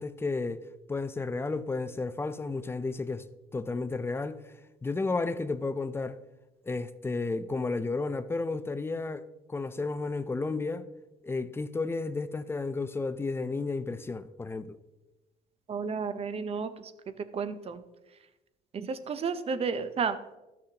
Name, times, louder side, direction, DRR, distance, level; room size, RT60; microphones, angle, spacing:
voice 1, 0.0-3.2 3.5-4.4 4.8-6.2 6.6-9.2 9.5-10.9 11.2-14.8, left 3 dB, 15° left, 0.4 m, -32 dB
voice 2, 15.7-16.9 17.2-17.8 18.7-20.4, right 5 dB, 35° right, 0.6 m, -32 dB
13.0 x 6.3 x 2.9 m
cardioid pair, 110°, 17 cm